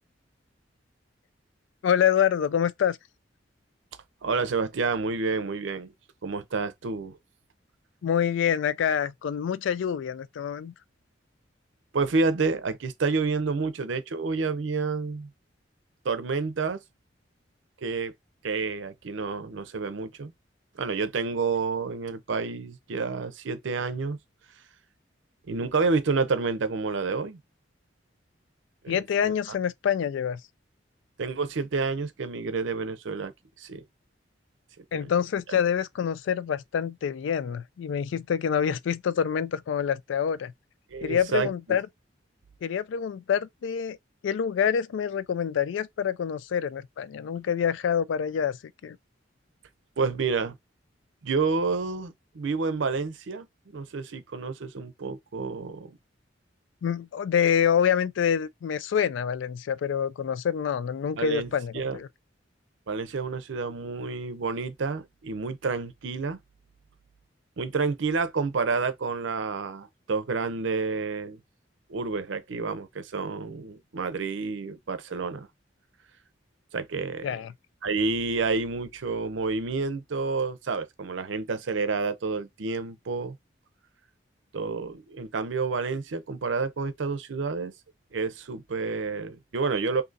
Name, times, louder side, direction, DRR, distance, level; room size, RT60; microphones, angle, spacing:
voice 1, 1.8-3.0 8.0-10.7 28.9-30.4 34.9-40.5 41.0-41.9 42.6-44.0 44.2-48.6 48.8-49.0 56.8-62.1 77.2-77.5, left 8 dB, 75° left, 0.3 m, -26 dB
voice 2, 4.2-5.9 6.2-7.2 11.9-15.3 16.0-16.8 17.8-18.1 18.4-20.3 20.8-24.2 25.5-27.4 28.8-29.3 31.2-33.3 33.6-33.8 34.8-35.1 40.9-41.5 50.0-50.6 51.2-53.5 53.7-56.0 61.2-62.0 62.9-66.4 67.6-71.4 71.9-75.5 76.7-77.3 77.8-83.4 84.5-87.7 88.1-90.0, right 4 dB, 75° right, 0.6 m, -29 dB
2.7 x 2.5 x 3.9 m
head